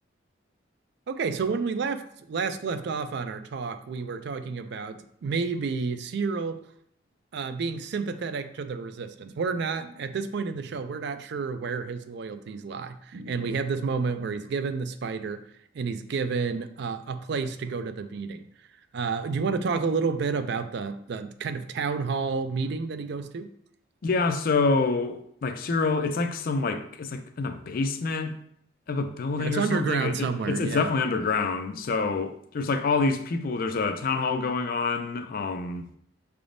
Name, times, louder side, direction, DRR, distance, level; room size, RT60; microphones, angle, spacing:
voice 1, 1.1-6.6 7.3-15.4 15.7-18.5 18.9-23.5 29.4-30.9, right 5 dB, 55° right, 0.3 m, -30 dB
voice 2, 24.0-28.3 28.9-35.8, left 4 dB, 45° left, 0.4 m, -27 dB
5.8 x 3.4 x 2.6 m
head